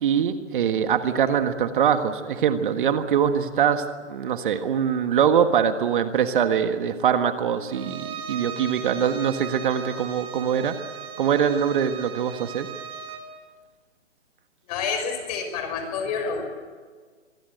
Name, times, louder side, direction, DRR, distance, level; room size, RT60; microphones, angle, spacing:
voice 1, 0.0-10.7 11.2-12.7, right 8 dB, 45° right, 8 dB, 1.7 m, -23 dB
Bowed string instrument, 7.7-13.3, right 5 dB, 15° right, 2.1 m, -38 dB
voice 2, 14.7-16.4, left 5 dB, 35° left, 6 dB, 5.9 m, -28 dB
26.0 x 23.0 x 8.0 m, 1.6 s
hypercardioid pair, 150°, 35 cm